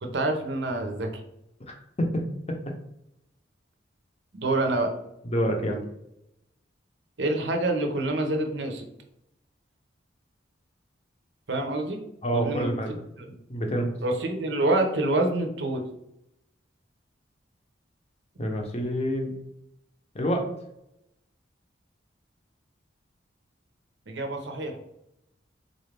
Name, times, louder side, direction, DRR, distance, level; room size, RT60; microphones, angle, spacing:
voice 1, 0.0-1.2 4.3-4.9 7.2-8.9 11.5-12.0 12.3-13.3 14.0-15.8 24.1-24.8, right 2 dB, 65° right, 4 dB, 0.6 m, -27 dB
voice 2, 1.7-2.2 2.5-2.6 5.3-5.8 12.2-12.9 13.5-13.9 18.4-19.3 20.1-20.5, equal, 35° left, 3 dB, 0.6 m, -27 dB
4.0 x 2.4 x 3.2 m, 0.80 s
head